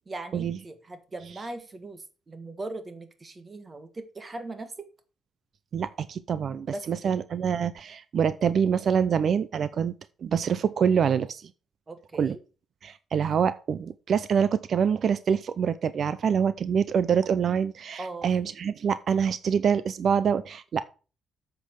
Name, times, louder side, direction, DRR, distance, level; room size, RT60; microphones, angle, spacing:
voice 1, 0.0-4.7 6.7-7.1 11.9-12.4 18.0-18.3, right 2 dB, 30° right, 1.7 m, -39 dB
voice 2, 5.7-9.9 10.2-11.5 12.2-12.4 12.8-20.8, right 7 dB, 55° right, 0.6 m, -25 dB
8.3 x 6.0 x 6.4 m
cardioid pair, 90°, 0 cm